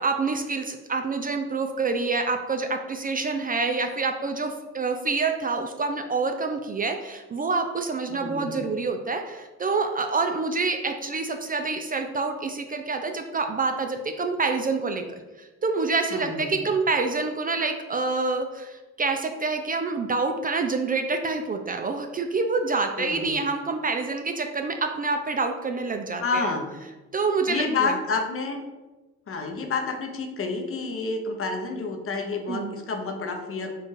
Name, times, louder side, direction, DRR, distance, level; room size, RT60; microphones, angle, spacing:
voice 1, 0.0-26.5 27.1-28.0 32.5-32.7, right 4 dB, 30° right, 6 dB, 0.4 m, -27 dB
voice 2, 8.1-8.6 16.1-16.6 23.0-23.4 26.2-26.8 27.5-28.6 29.3-33.7, left 4 dB, 45° left, 4 dB, 0.8 m, -29 dB
4.6 x 2.5 x 4.5 m, 1.1 s
cardioid pair, 90°, 30 cm